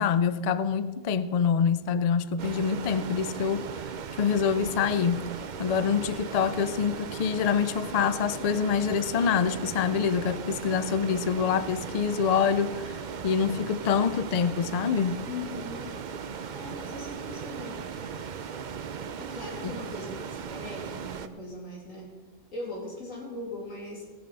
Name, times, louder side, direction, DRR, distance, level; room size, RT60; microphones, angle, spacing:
voice 1, 0.0-3.6 4.2-5.2 5.6-12.9 13.2-15.2, left 6 dB, 60° left, 0.4 m, -26 dB
sound 1, 2.4-21.3, right 6 dB, 50° right, 0.6 m, -37 dB
voice 2, 15.3-16.0 16.5-17.8 19.2-22.1 22.5-24.0, left 2 dB, 85° left, 3.2 m, -40 dB
18.0 x 6.9 x 5.4 m
omnidirectional pair, 1.3 m